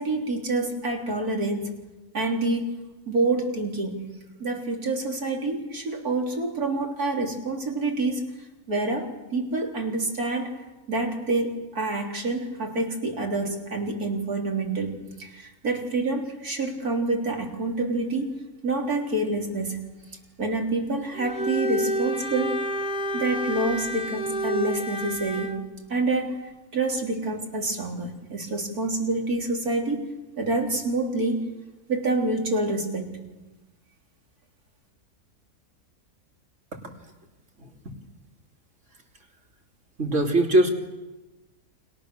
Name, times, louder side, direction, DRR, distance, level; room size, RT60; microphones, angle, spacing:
voice 1, 0.0-1.7 2.1-2.8 3.1-4.1 4.4-8.2 8.7-10.5 10.9-18.4 18.6-19.9 20.4-22.6 23.1-26.4 26.7-30.1 30.4-31.5 31.9-33.2, right 2 dB, 75° right, 2 dB, 4.0 m, -27 dB
Bowed string instrument, 21.1-25.6, right 1 dB, 35° left, 1.5 m, -29 dB
voice 2, 40.0-40.7, right 1 dB, 50° right, 2 dB, 3.5 m, -21 dB
29.5 x 26.5 x 6.9 m, 1.1 s
omnidirectional pair, 1.6 m